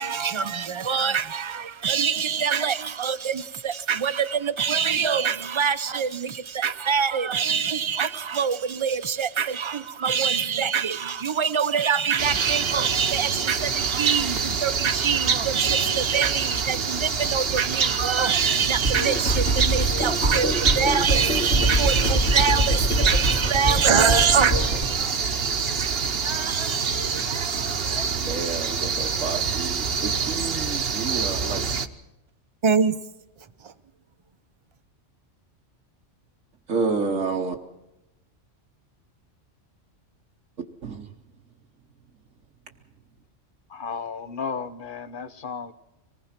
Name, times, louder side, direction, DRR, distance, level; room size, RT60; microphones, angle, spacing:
voice 1, 0.0-28.0 32.6-33.0 33.6-33.7, right 6 dB, 30° right, 0.7 m, -25 dB
sound 1, 12.2-31.9, right 6 dB, 55° right, 1.1 m, -26 dB
sound 2, 18.7-24.8, right 1 dB, 70° left, 2.6 m, -24 dB
voice 2, 28.2-31.7 36.7-37.5 40.8-41.1, right 4 dB, 85° right, 1.5 m, -29 dB
voice 3, 43.7-45.7, left 5 dB, 45° left, 1.0 m, -33 dB
25.5 x 19.5 x 5.9 m
omnidirectional pair, 1.3 m